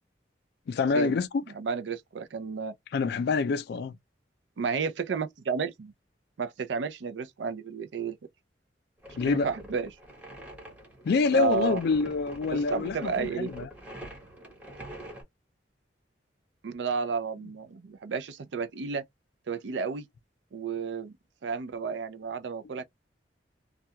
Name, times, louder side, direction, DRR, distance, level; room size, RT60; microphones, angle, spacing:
voice 1, 0.7-1.4 2.9-4.0 9.1-9.5 11.0-13.7, left 4 dB, 65° left, 0.3 m, -26 dB
voice 2, 1.5-2.7 4.6-5.9 6.4-8.2 9.2-9.9 11.3-11.8 12.5-13.5 16.6-19.0 19.5-20.1 20.5-21.1 21.4-22.8, right 5 dB, 80° right, 0.5 m, -32 dB
sound 1, 9.0-15.2, right 1 dB, 10° right, 1.1 m, -45 dB
2.3 x 2.3 x 2.7 m
head